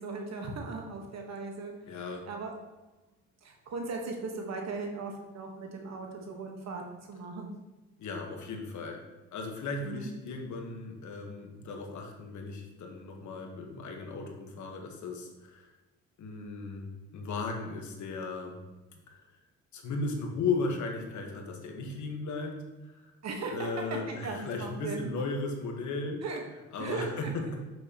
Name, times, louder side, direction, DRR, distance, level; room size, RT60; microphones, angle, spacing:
voice 1, 0.0-1.7 2.3-2.5 3.4-6.8 7.1-7.5 9.8-10.1 23.2-25.1 26.2-26.4 26.8-27.3, right 3 dB, 60° right, 2 dB, 1.3 m, -37 dB
voice 2, 1.9-2.2 8.0-9.0 9.3-15.7 16.2-18.6 18.9-19.2 19.7-23.1 23.5-26.2 26.7-27.5, left 3 dB, 70° left, 2 dB, 1.4 m, -36 dB
7.0 x 6.1 x 2.9 m, 1.1 s
cardioid pair, 90°, 30 cm